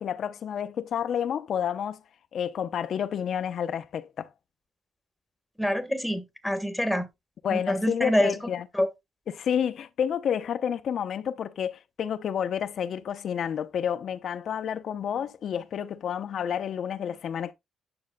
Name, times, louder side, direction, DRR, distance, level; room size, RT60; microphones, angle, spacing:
voice 1, 0.0-2.0 2.3-4.3 7.4-8.7 9.3-17.5, left 8 dB, 65° left, 0.7 m, -30 dB
voice 2, 5.6-7.1 7.5-8.3 8.7-8.9, equal, ahead, 1.4 m, -26 dB
9.7 x 6.2 x 2.2 m
cardioid pair, 90°, 0 cm